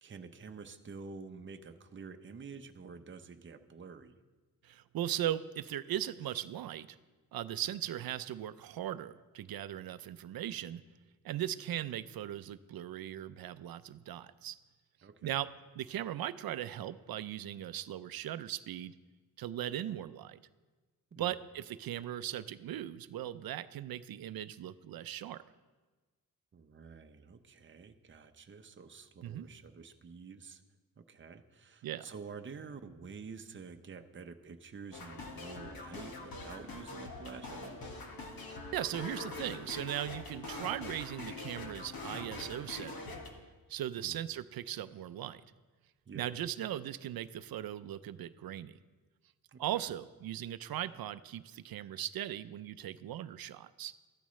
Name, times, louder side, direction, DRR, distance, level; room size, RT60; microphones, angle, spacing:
voice 1, 0.0-4.2 15.0-15.4 21.1-21.3 26.5-30.6 31.0-37.8 44.0-44.2 46.1-46.3 49.5-49.9, right 5 dB, 30° right, 6 dB, 0.7 m, -49 dB
voice 2, 4.6-7.0 7.3-10.8 11.2-14.6 15.2-15.5 15.8-19.0 19.4-20.4 21.2-25.4 29.2-29.5 31.8-32.1 38.7-43.1 43.7-45.4 46.1-48.8 49.6-53.9, right 12 dB, 70° right, 14 dB, 0.5 m, -38 dB
sound 1, 34.9-43.3, left 2 dB, 70° left, 1.7 m, -44 dB
14.0 x 12.5 x 3.2 m, 1.3 s
cardioid pair, 100°, 37 cm